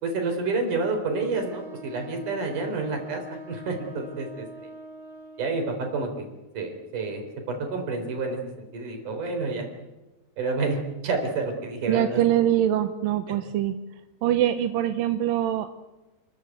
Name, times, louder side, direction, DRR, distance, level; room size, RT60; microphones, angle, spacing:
voice 1, 0.0-4.5 5.4-6.3 6.5-9.7 10.4-12.2, right 3 dB, 50° right, 4 dB, 5.4 m, -29 dB
Wind instrument woodwind instrument, 1.3-5.8, right 1 dB, 30° right, 2.5 m, -43 dB
voice 2, 11.9-13.7 14.2-15.7, right 11 dB, 75° right, 9 dB, 2.4 m, -23 dB
29.0 x 14.0 x 9.3 m, 1.1 s
omnidirectional pair, 4.6 m